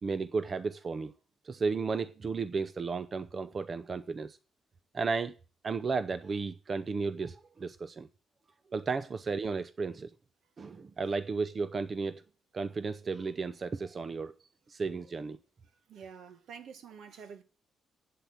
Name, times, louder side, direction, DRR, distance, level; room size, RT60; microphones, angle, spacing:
voice 1, 0.0-1.1 1.4-4.4 4.9-5.4 5.6-8.1 8.7-10.1 10.6-12.2 12.5-14.3 14.7-15.4, right 4 dB, 40° right, 0.6 m, -34 dB
voice 2, 15.9-17.4, right 6 dB, 70° right, 1.4 m, -48 dB
8.5 x 7.7 x 7.5 m
cardioid pair, 90°, 0 cm